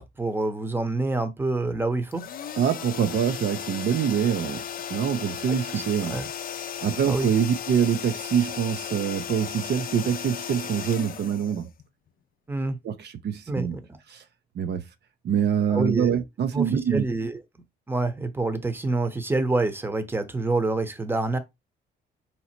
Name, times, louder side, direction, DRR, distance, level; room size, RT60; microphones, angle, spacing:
voice 1, 0.0-2.3 5.5-5.8 6.1-6.3 7.0-7.3 12.5-12.8 13.5-13.7 15.7-16.2 16.5-17.4 17.9-21.4, right 2 dB, 10° right, 0.9 m, -27 dB
sound 1, 2.1-12.1, left 9 dB, 45° left, 0.5 m, -35 dB
voice 2, 2.6-4.6 4.9-6.2 6.8-11.7 12.8-13.8 14.1-14.2 14.6-14.8 15.2-17.0, right 8 dB, 60° right, 0.6 m, -25 dB
3.9 x 2.9 x 4.3 m
cardioid pair, 90°, 20 cm